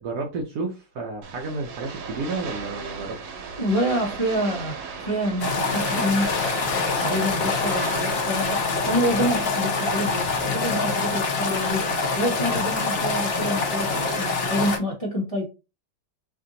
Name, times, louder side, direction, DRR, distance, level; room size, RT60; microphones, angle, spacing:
voice 1, 0.0-3.4 7.1-7.4, right 3 dB, 65° right, 1.1 m, -32 dB
sound 1, 1.2-9.4, right 5 dB, 85° right, 1.5 m, -36 dB
voice 2, 3.6-6.3 7.0-11.9 12.2-15.5, equal, 20° left, 1.1 m, -27 dB
sound 2, 5.4-14.8, left 3 dB, 55° left, 0.7 m, -25 dB
sound 3, 6.1-9.0 10.1-11.2, left 9 dB, 80° left, 1.2 m, -36 dB
3.4 x 2.7 x 3.7 m
omnidirectional pair, 2.0 m